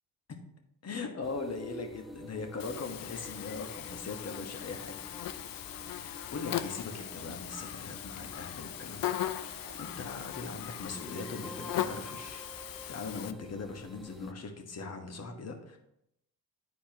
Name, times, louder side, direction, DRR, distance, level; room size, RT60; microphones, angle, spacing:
voice 1, 0.8-4.9 5.8-15.8, left 4 dB, 40° left, 4 dB, 1.4 m, -40 dB
sound 1, 1.2-14.3, equal, ahead, 0.3 m, -50 dB
Buzz, 2.6-13.3, left 11 dB, 65° left, 0.6 m, -39 dB
sound 2, 6.5-10.3, right 5 dB, 80° right, 0.9 m, -57 dB
10.5 x 4.2 x 2.8 m, 0.80 s
supercardioid pair, 70°, 38 cm